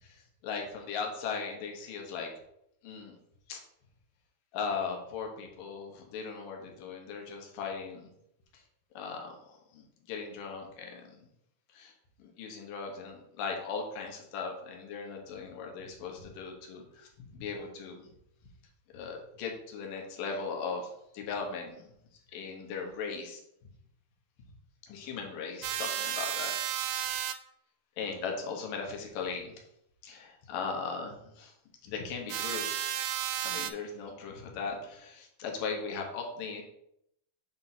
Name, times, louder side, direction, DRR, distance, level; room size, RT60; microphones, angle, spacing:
voice 1, 0.0-2.3 2.8-3.2 3.5-3.6 4.5-8.1 8.5-8.6 8.9-11.3 11.7-11.9 12.2-18.1 18.9-21.9 22.3-23.4 24.8-26.5 27.0-27.3 28.0-29.6 30.0-31.5 31.8-32.9 33.4-36.6, left 5 dB, 85° left, 1 dB, 2.7 m, -38 dB
sound 1, 25.6-27.3 32.3-33.7, right 11 dB, 80° right, 1.9 m, -33 dB
7.2 x 2.7 x 5.7 m, 0.77 s
omnidirectional pair, 3.8 m